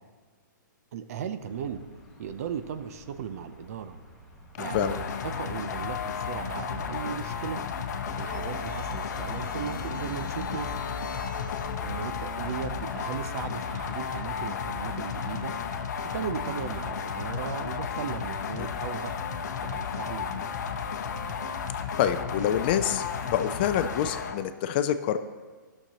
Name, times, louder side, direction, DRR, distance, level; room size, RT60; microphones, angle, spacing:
voice 1, 0.9-1.8 2.2-4.0 4.6-7.6 8.2-10.8 11.8-15.5 16.1-19.2 19.6-20.5, right 8 dB, 50° right, 10 dB, 0.5 m, -36 dB
sound 1, 1.4-17.1, equal, ahead, 1.3 m, -52 dB
sound 2, 4.6-24.4, left 6 dB, 60° left, 0.7 m, -33 dB
sound 3, 7.9-13.0, left 2 dB, 80° left, 1.0 m, -42 dB
voice 2, 22.0-23.0 23.3-25.2, left 10 dB, 30° left, 10 dB, 0.3 m, -26 dB
15.0 x 6.5 x 2.9 m, 1.4 s
hypercardioid pair, 155°, 10 cm